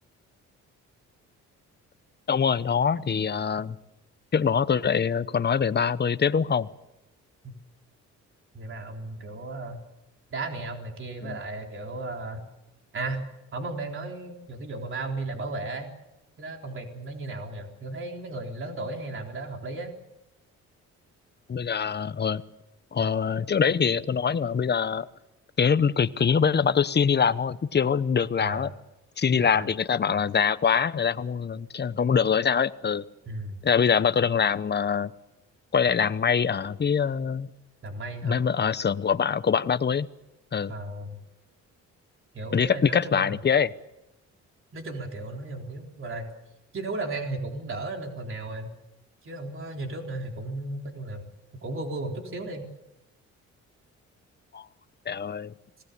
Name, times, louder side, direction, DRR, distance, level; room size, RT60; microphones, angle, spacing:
voice 1, 2.3-3.8 4.3-6.7 11.2-11.4 21.5-22.4 22.9-25.1 25.6-28.7 29.2-33.0 33.6-35.1 35.7-37.5 38.2-40.1 40.5-40.7 42.5-43.7 54.5-54.7 55.1-55.5, left 6 dB, 35° left, 14 dB, 1.0 m, -24 dB
voice 2, 8.5-9.8 10.3-12.4 12.9-13.3 13.5-15.9 16.4-19.9 28.4-28.7 29.3-29.7 33.3-33.6 37.8-38.4 40.7-41.2 42.3-43.4 44.7-46.3 46.7-48.7 49.2-51.3 51.6-52.6, right 2 dB, 45° right, 2 dB, 3.9 m, -35 dB
25.5 x 18.5 x 6.9 m, 0.94 s
cardioid pair, 90°, 30 cm